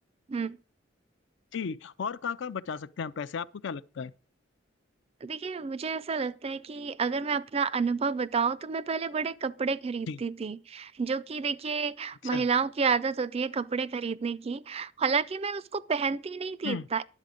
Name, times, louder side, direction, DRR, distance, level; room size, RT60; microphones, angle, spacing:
voice 1, 1.5-4.1 10.1-10.2 12.2-12.5 16.6-16.9, left 6 dB, 65° left, 0.5 m, -35 dB
voice 2, 5.2-17.1, right 5 dB, 30° right, 0.4 m, -30 dB
10.5 x 8.3 x 5.0 m
head